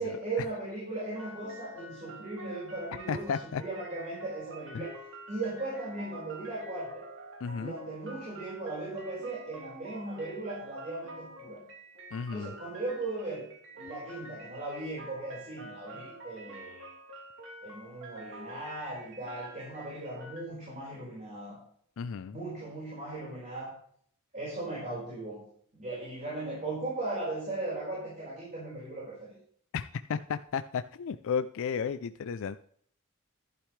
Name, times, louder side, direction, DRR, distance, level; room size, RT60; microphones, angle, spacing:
voice 1, 0.0-3.3 3.6-4.9 5.3-7.1 7.5-11.6 12.3-13.4 13.8-16.9 17.6-21.6 22.3-23.7 24.3-25.4 25.7-29.4, right 2 dB, 35° right, -6 dB, 4.9 m, -37 dB
sound 1, 1.1-20.4, right 1 dB, 60° right, 2.9 m, -48 dB
voice 2, 3.1-3.6 4.7-4.8 7.4-7.7 12.1-12.5 22.0-22.4 29.7-32.6, left 6 dB, 65° left, 11 dB, 0.4 m, -33 dB
11.5 x 11.5 x 3.2 m, 0.62 s
head